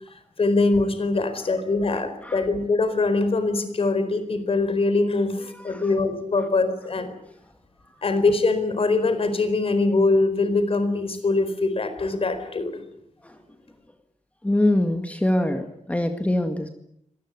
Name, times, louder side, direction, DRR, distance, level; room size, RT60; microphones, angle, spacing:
voice 1, 0.0-7.2 8.0-12.8, left 3 dB, 45° left, 11 dB, 4.3 m, -23 dB
voice 2, 1.9-2.5 5.5-5.9 6.4-6.5 7.0-7.1 13.2-13.6 14.4-16.7, left 1 dB, 10° left, 6 dB, 1.9 m, -25 dB
25.0 x 19.5 x 9.7 m, 0.71 s
wide cardioid pair, 180°, 13 cm